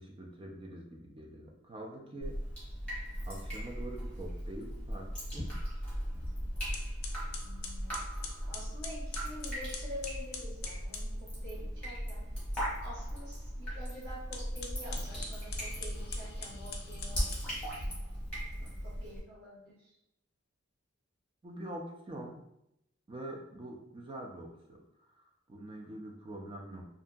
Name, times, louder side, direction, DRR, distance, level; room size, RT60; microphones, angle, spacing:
voice 1, 0.0-2.4 3.2-5.5 18.6-18.8 21.4-22.4 23.1-26.8, right 1 dB, 25° right, 0 dB, 0.4 m, -45 dB
Drip, 2.2-19.2, equal, 5° left, 1.0 m, -38 dB
sound 1, 6.2-6.3 6.7-11.1 14.2-17.9, left 5 dB, 50° left, 0.4 m, -45 dB
voice 2, 7.4-8.0 8.5-11.1 11.4-12.2 12.8-17.5 18.8-19.9, equal, 55° right, -8 dB, 1.1 m, -47 dB
2.7 x 2.5 x 2.2 m, 0.81 s
head